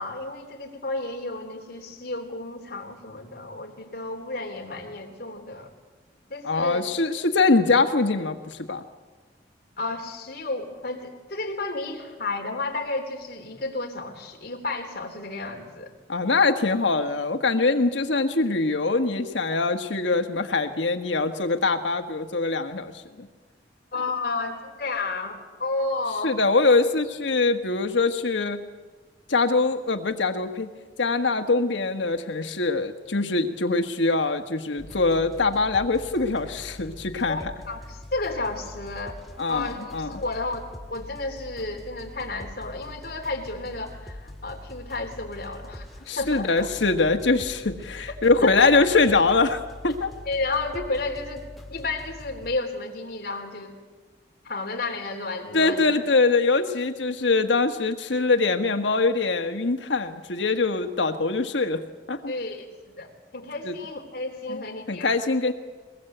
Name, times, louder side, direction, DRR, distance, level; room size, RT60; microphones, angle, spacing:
voice 1, 0.0-5.7 6.3-6.8 9.8-15.9 23.9-26.3 37.3-37.4 37.7-39.2 39.5-40.6 40.9-45.8 46.2-46.7 48.4-48.7 50.3-53.7 54.4-55.8 62.3-65.2, left 3 dB, 55° left, 1 dB, 3.4 m, -32 dB
voice 2, 6.4-8.8 16.1-23.3 26.2-28.6 29.3-30.7 31.0-37.4 39.4-40.1 46.1-49.6 49.8-50.1 55.5-61.8 62.1-62.3 63.6-63.7 64.5-64.6 64.9-65.5, left 3 dB, 90° left, 7 dB, 1.4 m, -23 dB
sound 1, 34.8-52.6, left 1 dB, ahead, 2.0 m, -43 dB
22.5 x 20.5 x 7.9 m, 1.4 s
head